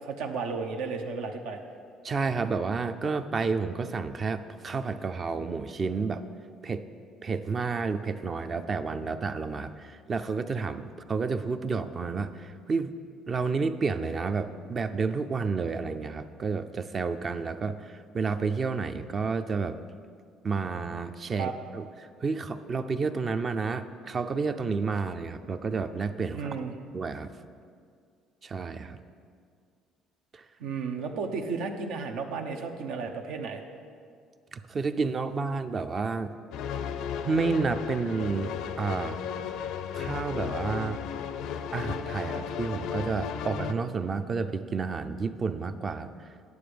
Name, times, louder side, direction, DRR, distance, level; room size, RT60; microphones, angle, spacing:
voice 1, 0.0-1.6 21.3-21.6 26.3-26.7 30.6-33.6, right 4 dB, 80° right, 4 dB, 0.9 m, -33 dB
voice 2, 2.0-6.2 6.6-6.8 7.2-12.9 13.3-19.8 20.4-21.9 22.2-26.5 26.9-27.3 28.4-29.0 30.3-30.4 34.5-36.3 37.2-39.2 39.9-41.0 41.7-46.1, right 4 dB, 35° right, 10 dB, 0.5 m, -30 dB
sound 1, 36.5-43.7, left 8 dB, 75° left, 0.4 m, -34 dB
9.5 x 7.1 x 5.1 m, 2.2 s
cardioid pair, 110°, 0 cm